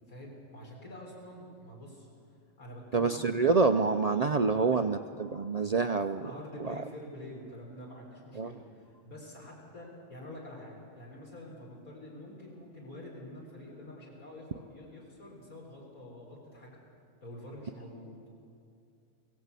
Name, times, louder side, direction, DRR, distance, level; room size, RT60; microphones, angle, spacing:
voice 1, 0.1-2.1 2.6-3.4 4.2-4.9 5.8-16.7 17.2-18.1, left 1 dB, 80° left, -3 dB, 4.6 m, -47 dB
voice 2, 2.9-6.3 6.7-6.8 8.4-8.5, right 4 dB, 75° right, 7 dB, 0.3 m, -27 dB
25.5 x 17.0 x 8.3 m, 2.4 s
omnidirectional pair, 1.5 m